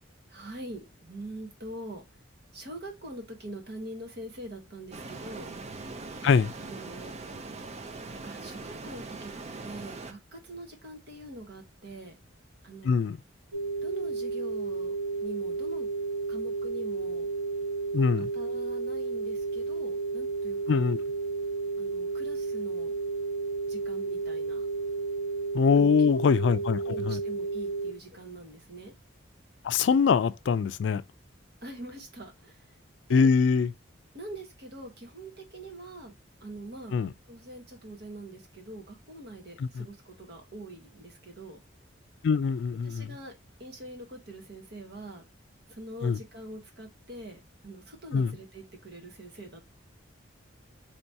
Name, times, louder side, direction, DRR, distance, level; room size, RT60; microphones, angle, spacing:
voice 1, 0.3-2.0 2.5-5.5 6.6-7.1 8.2-9.3 9.6-12.2 12.6-13.0 13.8-14.9 15.2-15.9 16.3-17.3 18.2-20.8 21.8-22.9 23.7-24.6 25.8-26.5 26.8-28.9 31.6-32.7 33.1-33.3 34.1-36.1 36.4-37.0 37.3-41.6 42.8-43.3 43.6-45.2 45.7-49.7, right 1 dB, 55° right, 1.1 m, -44 dB
sound 1, 4.9-10.1, right 3 dB, 35° right, 0.5 m, -41 dB
voice 2, 12.8-13.2 17.9-18.3 20.7-21.0 25.5-26.8 27.1-27.2 29.6-31.0 33.1-33.7 36.9-37.1 39.6-39.8 42.2-43.1 46.0-46.2 48.1-48.3, left 5 dB, 65° left, 0.3 m, -23 dB
sound 2, 13.5-27.9, right 4 dB, 90° right, 1.7 m, -32 dB
3.0 x 2.8 x 4.4 m
head